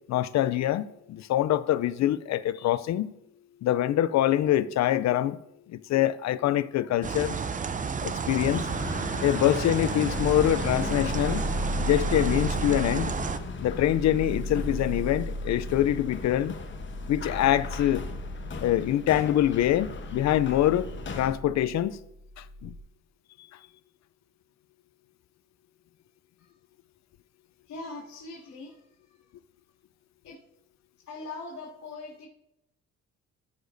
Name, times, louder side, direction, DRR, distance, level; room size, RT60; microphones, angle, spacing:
voice 1, 0.1-3.1 3.6-5.4 5.7-7.4 8.0-8.7 9.2-11.5 11.8-13.2 13.6-16.6 17.1-18.1 18.6-20.9 21.1-22.0 22.4-22.7, left 12 dB, 65° left, 0.4 m, -25 dB
sound 1, 7.0-13.4, right 5 dB, 25° right, 0.5 m, -31 dB
sound 2, 8.4-21.3, left 5 dB, 40° left, 1.0 m, -39 dB
sound 3, 10.1-22.8, equal, ahead, 2.7 m, -36 dB
voice 2, 27.6-29.3 30.2-30.4 31.0-32.3, left 3 dB, 80° left, 2.5 m, -42 dB
14.5 x 6.6 x 2.6 m
cardioid pair, 90°, 30 cm